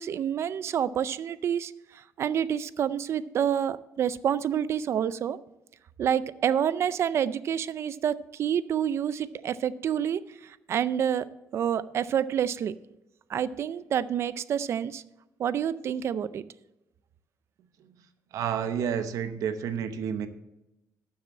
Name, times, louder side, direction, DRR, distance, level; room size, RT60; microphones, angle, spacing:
voice 1, 0.0-5.4 6.0-11.3 11.5-12.7 13.3-15.0 15.4-16.4, right 9 dB, 50° right, 16 dB, 0.4 m, -28 dB
voice 2, 18.3-20.3, right 8 dB, 75° right, 10 dB, 0.9 m, -30 dB
12.0 x 7.3 x 4.2 m, 0.93 s
cardioid pair, 160°, 6 cm